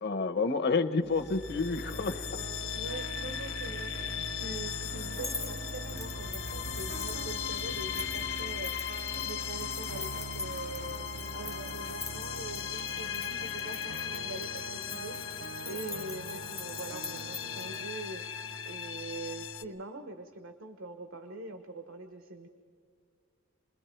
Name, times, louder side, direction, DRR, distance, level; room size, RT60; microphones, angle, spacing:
voice 1, 0.0-2.3, left 4 dB, 55° left, 11 dB, 1.0 m, -29 dB
sound 1, 1.1-19.6, left 7 dB, 90° left, 1.2 m, -37 dB
sound 2, 1.9-17.9, right 5 dB, 55° right, 0.5 m, -46 dB
voice 2, 2.7-22.5, right 2 dB, 85° right, 7 dB, 1.2 m, -44 dB
sound 3, 5.1-17.8, left 4 dB, 15° left, 0.5 m, -44 dB
28.5 x 21.0 x 4.6 m, 2.3 s
head